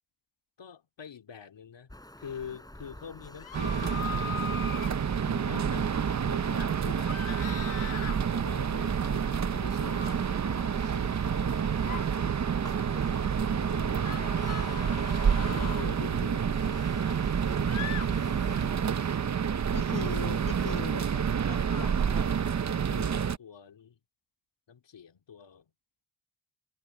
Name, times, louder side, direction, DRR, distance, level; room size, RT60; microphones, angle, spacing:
voice 1, 0.6-1.9 2.2-4.6 5.4-7.2 8.3-11.7 12.9-14.4 15.4-17.9 21.1-24.0 24.7-25.7, left 7 dB, 65° left, 2.8 m, -46 dB
sound 1, 1.9-18.7, left 1 dB, 10° left, 3.8 m, -48 dB
sound 2, 3.4-4.9 7.1-8.2 9.9-10.1 11.7-12.0 14.0-15.9 17.7-18.1, left 7 dB, 85° left, 1.9 m, -39 dB
sound 3, 3.5-23.4, right 7 dB, 35° right, 0.8 m, -28 dB
voice 2, 5.2-5.6 18.0-19.2 19.7-21.1 21.7-22.0, left 6 dB, 45° left, 1.5 m, -41 dB
cardioid pair, 75°, 47 cm